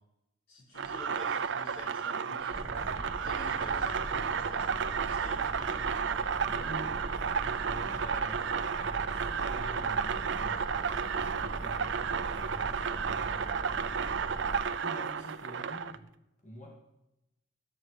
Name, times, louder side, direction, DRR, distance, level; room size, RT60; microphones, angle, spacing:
voice 1, 0.5-4.7 4.9-6.2 7.8-7.9, left 2 dB, 90° left, -3 dB, 5.0 m, -48 dB
sound 1, 0.8-16.0, right 6 dB, 60° right, 0.5 m, -32 dB
sound 2, 2.5-14.7, right 1 dB, 5° right, 1.2 m, -41 dB
voice 2, 6.4-13.7 14.4-16.1 16.4-16.7, equal, 35° left, -1 dB, 2.1 m, -48 dB
14.0 x 8.7 x 4.9 m, 0.89 s
head